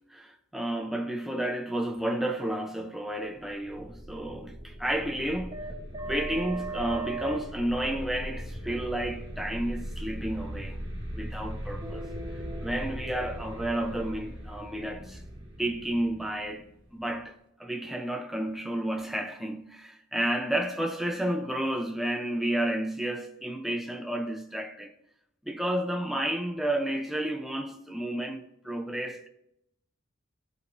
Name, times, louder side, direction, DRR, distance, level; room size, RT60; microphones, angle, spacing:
voice 1, 0.1-5.6 6.0-10.8 11.1-12.1 12.6-15.2 15.6-24.9 25.4-29.3, right 1 dB, ahead, 0.7 m, -31 dB
sound 1, 3.4-17.2, right 1 dB, 25° right, 1.5 m, -38 dB
13.5 x 4.8 x 2.7 m
head